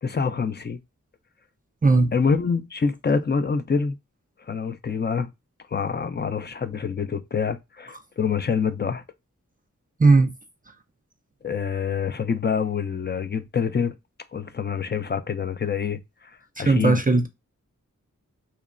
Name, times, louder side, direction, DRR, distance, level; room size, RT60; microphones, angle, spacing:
voice 1, 0.0-0.8 2.1-4.0 4.5-5.3 5.7-9.0 11.4-14.0 14.3-16.0 16.6-17.0, left 5 dB, 35° left, 0.4 m, -26 dB
voice 2, 1.8-2.1 10.0-10.3 16.6-17.3, right 3 dB, 25° right, 0.4 m, -17 dB
3.0 x 2.0 x 2.4 m
wide cardioid pair, 45°, 32 cm